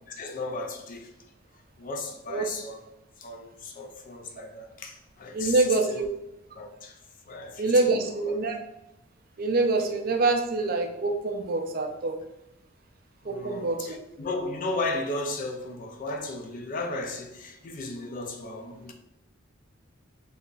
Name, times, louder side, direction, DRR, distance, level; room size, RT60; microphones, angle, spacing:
voice 1, 0.1-1.1 1.8-2.8 3.2-6.1 6.5-7.0 7.3-7.9 8.2-8.4 13.2-18.9, left 2 dB, 40° left, 0.4 m, -35 dB
voice 2, 5.3-6.1 7.6-8.6 9.4-12.1 13.3-13.8, right 3 dB, 45° right, 0.4 m, -25 dB
3.7 x 2.8 x 2.4 m
head